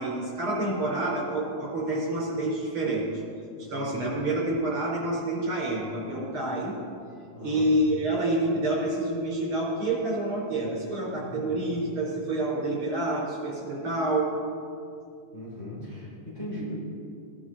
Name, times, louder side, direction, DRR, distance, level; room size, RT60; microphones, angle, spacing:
voice 1, 0.0-3.1 3.6-6.7 7.4-14.3, right 1 dB, 45° right, -4 dB, 5.2 m, -28 dB
voice 2, 3.6-4.2 7.3-7.7 11.1-11.6 15.3-16.7, equal, 20° left, -8 dB, 4.7 m, -39 dB
19.5 x 11.5 x 4.1 m, 2.5 s
omnidirectional pair, 3.5 m